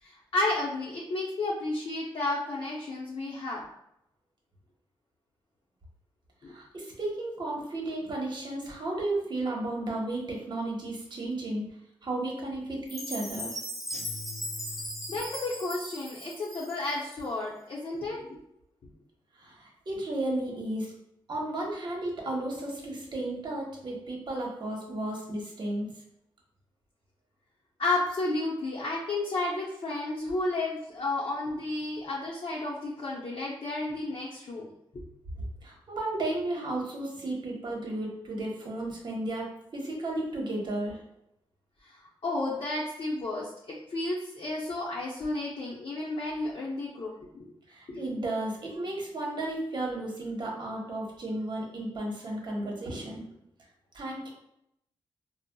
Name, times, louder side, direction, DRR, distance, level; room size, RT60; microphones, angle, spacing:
voice 1, 0.0-3.6 15.1-18.4 27.8-34.7 41.8-42.0 42.2-47.5 47.9-48.0, left 2 dB, 65° left, -5 dB, 0.6 m, -32 dB
voice 2, 6.5-11.6 12.0-13.5 19.3-20.9 21.3-25.9 35.4-41.0 47.7-53.3 53.9-54.3, right 2 dB, 55° right, -1 dB, 0.9 m, -33 dB
Chime, 12.9-17.1, equal, ahead, 0.6 m, -38 dB
sound 1, 13.9-15.6, left 2 dB, 90° right, 0.4 m, -45 dB
4.0 x 2.0 x 2.2 m, 0.80 s
cardioid pair, 85°, 9 cm